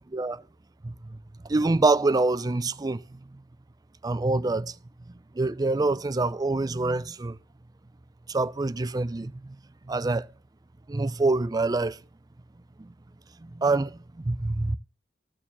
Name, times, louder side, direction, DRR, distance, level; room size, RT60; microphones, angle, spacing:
voice 1, 0.1-0.4 0.8-1.2 1.4-3.2 4.0-4.7 5.3-7.4 8.3-9.6 9.9-10.3 10.9-12.0 12.8-12.9 13.4-14.8, right 3 dB, 20° right, 0.4 m, -26 dB
14.0 x 4.8 x 7.0 m
head